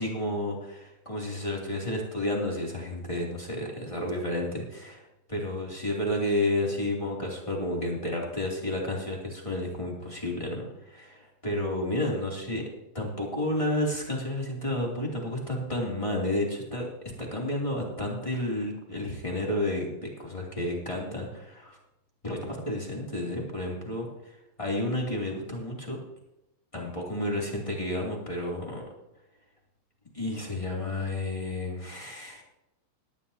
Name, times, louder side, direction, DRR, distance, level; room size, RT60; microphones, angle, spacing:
voice 1, 0.0-5.0 5.3-12.6 12.9-16.9 17.2-21.8 22.2-26.0 26.7-28.8 30.1-32.4, left 1 dB, 15° left, -2 dB, 1.3 m, -31 dB
19.5 x 11.5 x 2.8 m, 0.91 s
omnidirectional pair, 5.2 m